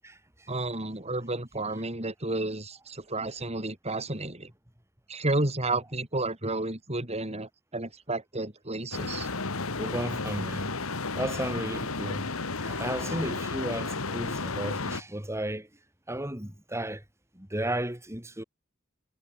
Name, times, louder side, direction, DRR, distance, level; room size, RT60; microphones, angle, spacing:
voice 1, 0.5-4.5 5.1-9.3, right 2 dB, 30° right, 4.4 m, -31 dB
sound 1, 8.9-15.0, left 3 dB, 85° left, 1.9 m, -33 dB
voice 2, 9.8-10.8 11.1-12.3 12.6-15.7 16.1-17.0 17.3-18.4, right 1 dB, 15° right, 4.3 m, -34 dB
head